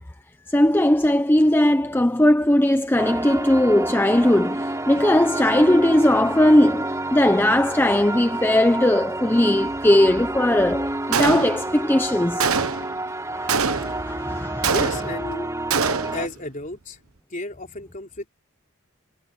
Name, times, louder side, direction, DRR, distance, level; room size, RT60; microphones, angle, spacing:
voice 1, 0.5-12.5 13.4-14.7, left 1 dB, 10° left, 0.7 m, -19 dB
sound 1, 3.0-16.3, right 2 dB, 15° right, 3.9 m, -30 dB
Gunshot gunfire, 11.1-11.8 12.4-13.0 13.5-14.1 14.6-15.3 15.7-16.3, right 5 dB, 75° right, 1.2 m, -24 dB
voice 2, 14.7-15.5 16.1-17.0 17.3-18.3, left 2 dB, 35° left, 3.9 m, -32 dB
head